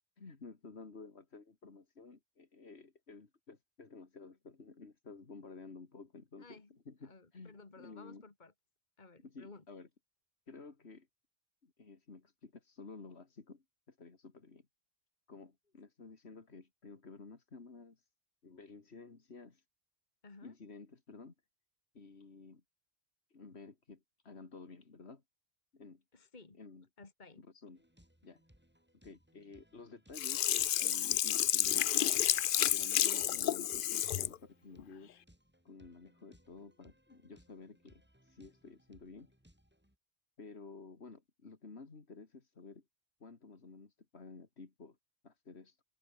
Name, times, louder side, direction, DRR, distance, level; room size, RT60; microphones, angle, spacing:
voice 1, 0.2-8.2 9.2-9.9 10.5-11.1 11.6-14.7 15.3-18.1 18.4-19.6 20.4-21.3 21.9-22.6 23.3-25.2 25.7-26.0 26.6-26.9 27.4-27.8 28.2-28.4 29.0-32.1 32.6-35.2 35.6-39.3 40.4-42.8 43.2-45.0 45.2-45.8, left 4 dB, 85° left, 2.6 m, -53 dB
voice 2, 6.4-6.8 7.0-8.5 9.0-9.6 20.2-20.5 26.1-26.6 27.0-27.5, left 3 dB, 45° left, 2.3 m, -55 dB
sound 1, 27.7-40.0, equal, 10° right, 4.2 m, -67 dB
Sink (filling or washing), 30.1-34.3 34.8-34.9, left 11 dB, 60° left, 0.7 m, -30 dB
open air
omnidirectional pair, 1.1 m